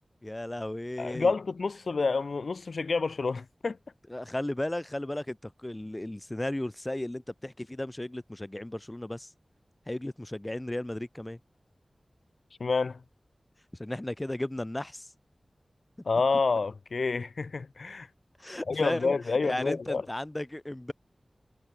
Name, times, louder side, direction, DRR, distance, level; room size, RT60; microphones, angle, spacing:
voice 1, 0.2-1.3 4.1-9.3 9.9-11.4 13.8-15.1 18.4-19.2 19.4-20.9, left 1 dB, 20° left, 3.2 m, -35 dB
voice 2, 1.0-3.8 12.6-13.0 16.0-18.1 18.7-20.0, left 4 dB, 80° left, 0.9 m, -28 dB
wide cardioid pair, 70°, 0 cm